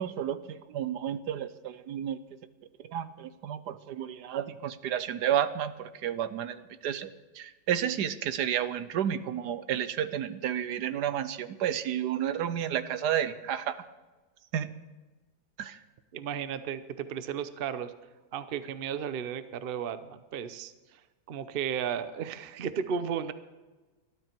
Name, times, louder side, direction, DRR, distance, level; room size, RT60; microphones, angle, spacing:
voice 1, 0.0-2.2 2.9-7.1 7.4-13.8 14.5-14.7 15.6-15.8, right 10 dB, 65° right, 13 dB, 1.2 m, -31 dB
voice 2, 16.1-17.9 18.3-21.0 21.3-23.3, right 8 dB, 90° right, 12 dB, 0.5 m, -34 dB
20.5 x 12.5 x 4.5 m, 1.2 s
omnidirectional pair, 2.1 m